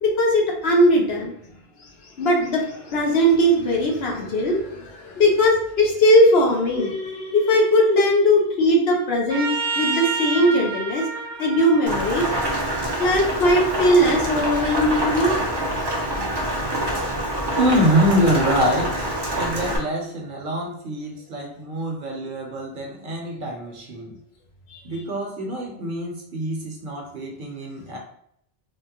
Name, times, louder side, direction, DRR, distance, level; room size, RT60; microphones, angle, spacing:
voice 1, 0.0-1.3 1.8-1.9 2.2-9.5 9.7-11.1 11.4-12.3 13.0-15.4 24.7-24.8, equal, 85° left, -1 dB, 1.0 m, -19 dB
Trumpet, 9.3-13.8, right 4 dB, 85° right, 0.9 m, -30 dB
Rain, 11.9-19.8, right 1 dB, 30° right, 0.5 m, -25 dB
voice 2, 17.6-24.2 24.8-28.0, equal, 60° right, 0 dB, 0.8 m, -25 dB
3.4 x 2.2 x 2.9 m, 0.68 s
omnidirectional pair, 1.0 m